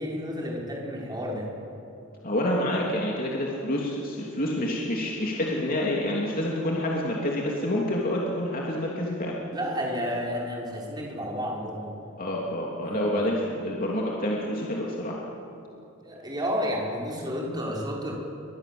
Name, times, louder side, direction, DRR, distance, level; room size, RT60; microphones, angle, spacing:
voice 1, 0.0-1.5 9.5-11.9 12.8-13.2 16.0-18.1, equal, 20° right, -3 dB, 6.0 m, -31 dB
voice 2, 2.2-9.3 12.2-15.1, left 1 dB, 40° left, -3 dB, 3.1 m, -28 dB
30.0 x 24.5 x 7.9 m, 2.8 s
head